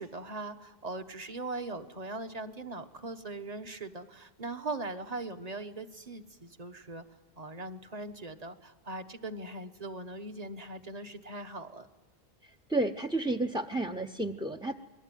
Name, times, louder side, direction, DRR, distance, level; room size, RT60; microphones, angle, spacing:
voice 1, 0.0-7.0 7.4-11.9, right 2 dB, 40° right, 7 dB, 1.4 m, -40 dB
voice 2, 12.7-14.7, right 2 dB, 5° right, 7 dB, 0.6 m, -31 dB
28.0 x 21.0 x 9.2 m, 1.2 s
omnidirectional pair, 1.1 m